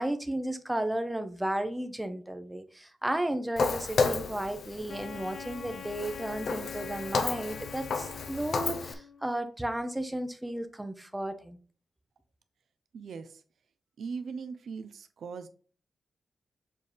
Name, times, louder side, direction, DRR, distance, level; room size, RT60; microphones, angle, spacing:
voice 1, 0.0-11.6, right 1 dB, 10° right, 0.8 m, -34 dB
Walk footsteps, 3.6-8.9, left 4 dB, 70° left, 0.8 m, -32 dB
Wind instrument woodwind instrument, 4.9-9.3, left 7 dB, 45° left, 0.4 m, -44 dB
voice 2, 12.9-13.4 14.0-15.5, right 5 dB, 75° right, 0.7 m, -39 dB
7.2 x 4.2 x 3.4 m
wide cardioid pair, 140°, 0 cm